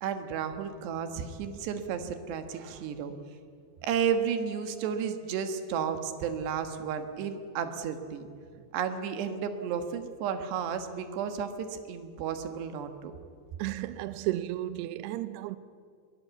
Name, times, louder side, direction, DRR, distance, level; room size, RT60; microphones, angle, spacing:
voice 1, 0.0-3.1 3.8-8.3 8.7-13.1, right 7 dB, 70° right, 3.3 m, -32 dB
voice 2, 13.6-15.6, right 15 dB, 85° right, 2.3 m, -33 dB
21.5 x 21.0 x 8.2 m
omnidirectional pair, 5.5 m